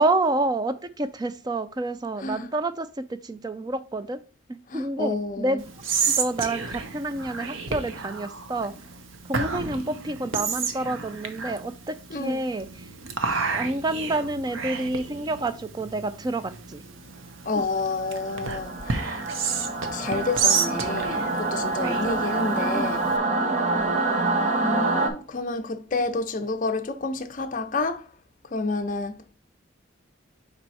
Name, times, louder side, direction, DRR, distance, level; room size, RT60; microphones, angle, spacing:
voice 1, 0.0-4.2 4.5-5.6 6.1-8.7 9.3-12.9 13.5-16.8 17.5-17.6 21.8-22.2 22.7-22.9 23.5-23.9, right 2 dB, 20° right, 0.3 m, -28 dB
voice 2, 4.7-5.6 12.1-12.5 17.5-19.3 19.9-23.0 24.6-28.0 28.5-29.3, left 3 dB, 40° left, 0.5 m, -29 dB
Whispering, 5.6-23.2, right 5 dB, 75° right, 0.8 m, -31 dB
Singing / Musical instrument, 17.9-25.1, right 2 dB, 35° right, 0.9 m, -26 dB
5.4 x 4.5 x 4.1 m
head